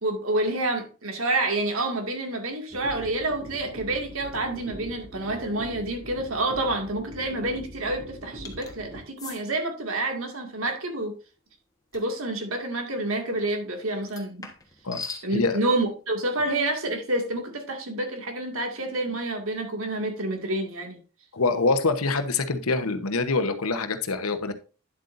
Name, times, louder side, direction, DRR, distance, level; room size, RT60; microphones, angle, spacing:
voice 1, 0.0-11.1 11.9-14.5 15.2-21.0, right 2 dB, 70° right, 2.2 m, -28 dB
sound 1, 2.7-9.0, equal, 40° right, 3.0 m, -42 dB
sound 2, 8.4-8.7 9.2-9.4 11.9-12.1 14.0-15.3, left 4 dB, 15° left, 1.3 m, -39 dB
voice 2, 21.3-24.5, left 3 dB, 85° left, 1.1 m, -25 dB
10.0 x 7.9 x 2.6 m
head